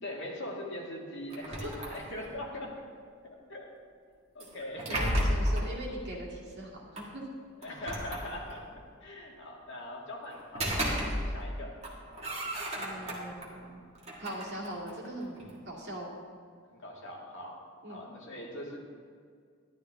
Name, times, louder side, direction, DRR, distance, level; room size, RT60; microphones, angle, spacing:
voice 1, 0.0-2.7 3.5-3.6 4.3-5.1 7.6-8.7 9.0-11.7 16.7-17.6 17.9-18.8, left 1 dB, 60° left, -2 dB, 2.0 m, -41 dB
sound 1, 1.3-2.4 4.4-5.7 7.0-7.1 7.6-8.7 10.3-11.5 11.8-13.5 14.0-15.6, equal, 30° right, 1.9 m, -33 dB
voice 2, 4.9-7.2 12.7-13.8 14.2-15.4 15.7-16.1 17.8-18.0, right 1 dB, 55° right, -4 dB, 2.3 m, -41 dB
12.5 x 11.5 x 3.6 m, 2.1 s
head